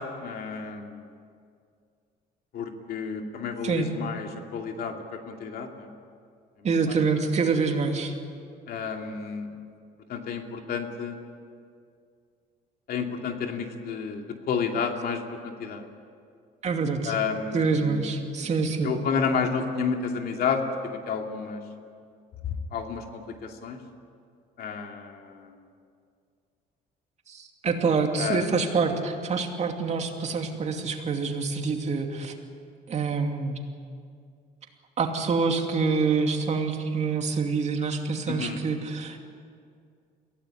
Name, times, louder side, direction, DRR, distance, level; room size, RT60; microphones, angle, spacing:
voice 1, 0.2-1.0 2.5-5.9 6.6-7.0 8.7-9.5 10.1-11.3 12.9-15.8 17.0-18.0 18.8-21.6 22.7-23.8 24.6-25.6 28.2-28.5 38.3-38.6, left 6 dB, 65° left, 3 dB, 2.6 m, -31 dB
voice 2, 6.6-8.1 16.6-17.1 17.5-18.9 27.3-32.3 32.9-33.6 35.0-39.2, right 4 dB, 40° right, 4 dB, 2.6 m, -26 dB
23.0 x 16.5 x 9.9 m, 2.3 s
cardioid pair, 110°, 17 cm